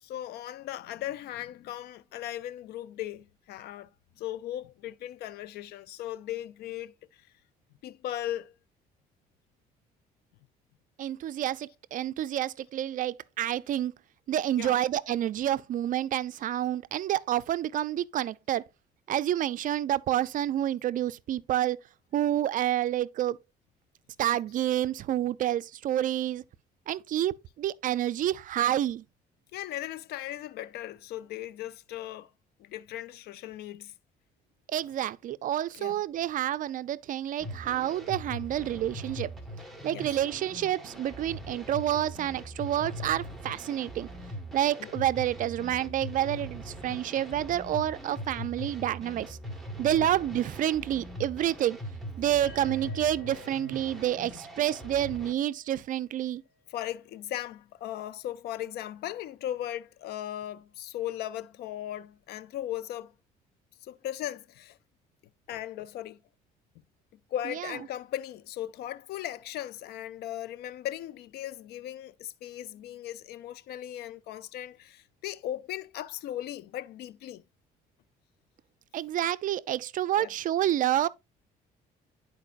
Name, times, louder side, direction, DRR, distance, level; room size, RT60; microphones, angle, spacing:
voice 1, 0.0-3.9 4.2-7.3 7.8-8.5 14.6-14.8 29.5-32.3 32.6-33.9 34.7-35.0 35.7-36.0 39.9-40.2 41.4-41.5 44.8-44.9 50.0-50.1 56.7-63.1 63.8-64.8 65.5-66.2 67.3-77.4 80.1-80.4, left 12 dB, 70° left, 0.4 m, -38 dB
voice 2, 11.0-13.9 14.3-18.6 19.1-21.8 22.1-23.4 24.2-26.4 26.9-29.0 34.7-39.3 39.8-44.1 44.5-49.4 49.8-51.8 52.2-56.4 78.9-81.1, right 12 dB, 50° right, 0.4 m, -29 dB
sound 1, 37.4-55.3, equal, ahead, 1.4 m, -41 dB
sound 2, 52.4-56.3, left 1 dB, 55° left, 1.8 m, -52 dB
11.0 x 4.6 x 2.4 m
cardioid pair, 110°, 17 cm